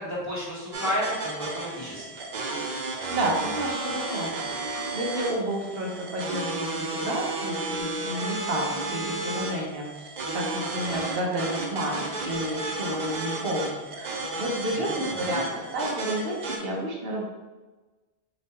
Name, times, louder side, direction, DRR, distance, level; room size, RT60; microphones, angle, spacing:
voice 1, 0.0-2.2 14.8-15.6, equal, 15° left, -8 dB, 1.3 m, -32 dB
sound 1, 0.7-16.6, right 2 dB, 50° right, 0.6 m, -33 dB
voice 2, 3.1-4.5 4.9-9.9 10.3-17.2, right 1 dB, 70° right, -2 dB, 1.0 m, -31 dB
3.5 x 2.9 x 4.1 m, 1.2 s
omnidirectional pair, 1.1 m